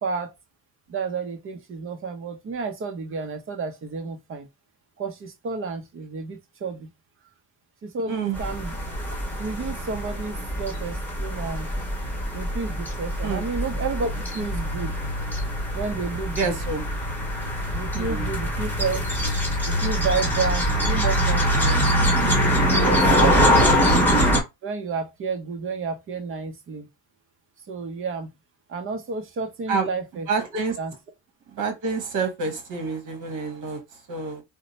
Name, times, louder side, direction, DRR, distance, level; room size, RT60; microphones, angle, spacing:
voice 1, 0.0-0.3 0.9-4.5 5.0-6.9 7.8-8.8 9.4-11.7 12.3-15.0 15.7-16.6 17.7-19.0 19.7-21.9 22.7-23.5 24.6-26.9 27.7-28.3 28.7-30.3 30.8-30.9, right 4 dB, 35° right, 0.8 m, -31 dB
voice 2, 8.1-8.4 13.2-13.4 16.4-16.8 17.9-18.3 23.5-23.7 29.7-29.9 30.3-30.8 31.5-34.4, right 4 dB, 50° right, 1.4 m, -28 dB
sound 1, 8.4-24.4, equal, 5° left, 1.2 m, -23 dB
2.8 x 2.2 x 4.0 m
cardioid pair, 125°, 39 cm